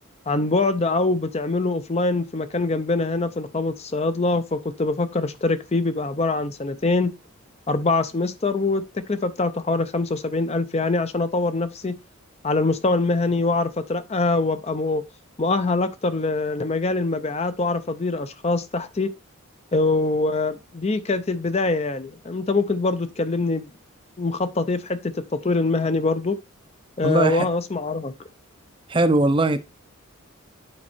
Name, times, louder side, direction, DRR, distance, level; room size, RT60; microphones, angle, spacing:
voice 1, 0.3-7.1 7.7-12.0 12.4-15.0 15.4-19.1 19.7-23.7 24.2-25.1 25.4-26.4 27.0-28.1, left 3 dB, 30° left, 0.5 m, -24 dB
voice 2, 27.0-27.5 28.9-29.6, right 2 dB, 25° right, 0.5 m, -20 dB
8.8 x 4.3 x 4.4 m
head